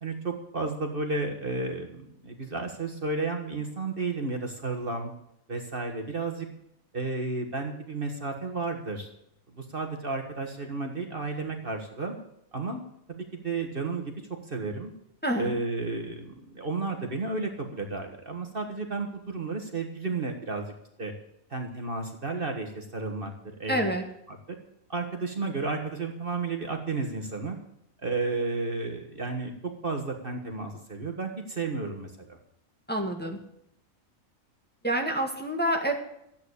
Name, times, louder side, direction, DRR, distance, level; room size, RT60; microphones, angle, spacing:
voice 1, 0.0-5.1 5.5-6.5 6.9-9.1 9.5-12.2 12.5-14.2 14.4-14.9 15.4-20.7 21.0-21.1 21.5-23.3 23.6-23.9 24.9-27.6 28.0-32.3, right 3 dB, 40° right, 4 dB, 1.8 m, -32 dB
voice 2, 15.2-15.6 23.7-24.0 32.9-33.4 34.8-35.9, right 1 dB, 5° left, 2 dB, 1.9 m, -27 dB
14.0 x 8.9 x 8.3 m, 0.76 s
omnidirectional pair, 1.4 m